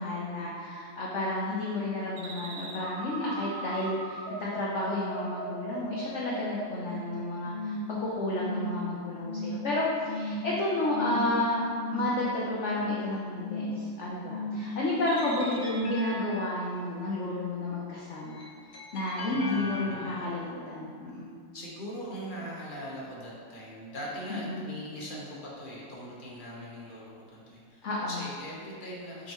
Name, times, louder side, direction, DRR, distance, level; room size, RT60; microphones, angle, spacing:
voice 1, 0.0-11.6 11.9-18.4 18.9-21.4 24.3-24.7 27.8-28.2, left 1 dB, 60° left, -5 dB, 0.8 m, -31 dB
sound 1, 2.2-7.1 7.5-7.9 8.3-8.8 9.2-9.6 10.0-10.5 10.9-11.4 11.7-12.2 12.5-13.0 13.4-13.9 14.2-14.7 15.1-15.6, equal, 85° right, 1.5 m, -36 dB
sound 2, 14.7-17.1 18.1-20.5, left 1 dB, 75° left, 1.6 m, -42 dB
voice 2, 19.3-20.1 21.5-29.3, equal, 35° left, -5 dB, 1.0 m, -41 dB
5.8 x 5.4 x 3.0 m, 2.2 s
omnidirectional pair, 2.1 m